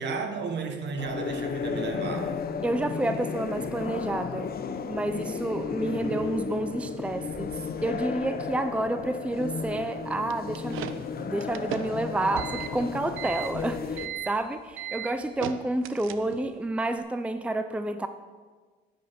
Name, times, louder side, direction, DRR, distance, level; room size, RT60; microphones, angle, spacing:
voice 1, 0.0-2.4, right 5 dB, 65° right, 6 dB, 1.5 m, -33 dB
sound 1, 1.0-14.1, left 5 dB, 50° left, 0.8 m, -34 dB
voice 2, 2.6-4.5 4.9-7.6 7.8-18.1, right 1 dB, 5° right, 9 dB, 0.5 m, -30 dB
sound 2, 10.3-16.6, right 10 dB, 90° right, 0.6 m, -37 dB
9.8 x 9.4 x 5.3 m, 1.4 s
cardioid pair, 90°, 20 cm